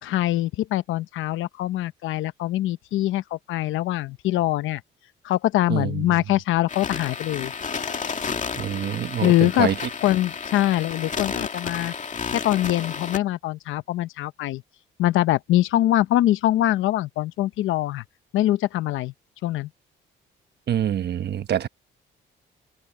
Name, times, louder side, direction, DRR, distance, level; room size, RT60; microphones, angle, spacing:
voice 1, 0.0-4.8 5.2-7.5 9.2-9.7 10.0-11.9 12.3-14.6 15.0-18.0 18.3-19.1 19.4-19.7, left 14 dB, 85° left, 0.9 m, -23 dB
voice 2, 5.7-6.1 8.5-9.8 20.7-21.7, right 10 dB, 55° right, 1.1 m, -26 dB
sound 1, 6.7-13.2, left 5 dB, 40° left, 2.3 m, -32 dB
open air
cardioid pair, 90°, 20 cm